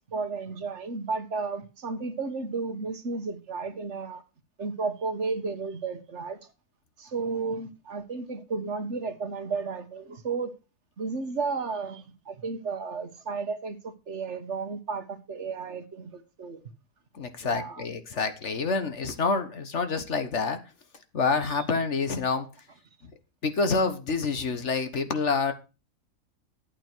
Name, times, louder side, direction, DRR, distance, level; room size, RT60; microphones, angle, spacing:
voice 1, 0.1-4.2 4.6-6.4 7.0-10.5 11.0-16.6 17.4-17.8 21.5-21.6, right 4 dB, 50° right, 1.5 m, -33 dB
voice 2, 17.1-20.6 21.1-22.5 23.4-25.5, left 4 dB, 50° left, 1.6 m, -27 dB
11.5 x 8.4 x 4.5 m
omnidirectional pair, 1.6 m